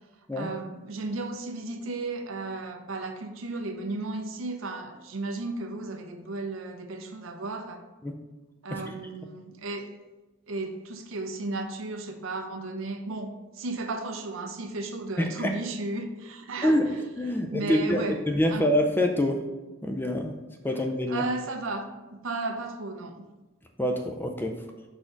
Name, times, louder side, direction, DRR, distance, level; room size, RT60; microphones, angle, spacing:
voice 1, 0.4-7.8 8.6-9.9 10.5-16.8 17.5-18.2 18.5-18.7 21.1-23.3, right 2 dB, 70° right, 6 dB, 0.6 m, -34 dB
voice 2, 15.2-15.5 16.6-19.4 19.8-20.3 20.6-21.2 23.8-24.5, left 1 dB, 10° left, 3 dB, 0.4 m, -26 dB
5.8 x 4.2 x 3.8 m, 1.1 s
head